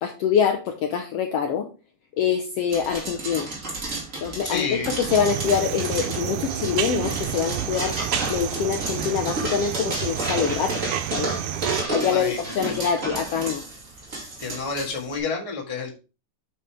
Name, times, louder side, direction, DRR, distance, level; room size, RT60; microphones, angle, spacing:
voice 1, 0.0-1.7 2.2-3.5 4.2-4.7 5.0-8.0 8.3-10.7 11.1-11.3 11.9-13.6, left 7 dB, 75° left, 5 dB, 1.5 m, -25 dB
sound 1, 2.7-15.2, right 2 dB, 30° right, 2.2 m, -32 dB
voice 2, 4.4-5.0 12.0-12.8 14.4-15.9, left 4 dB, 20° left, 0 dB, 1.0 m, -30 dB
sound 2, 5.1-11.8, right 11 dB, 85° right, 2.2 m, -30 dB
8.2 x 5.3 x 3.5 m, 0.32 s
omnidirectional pair, 3.4 m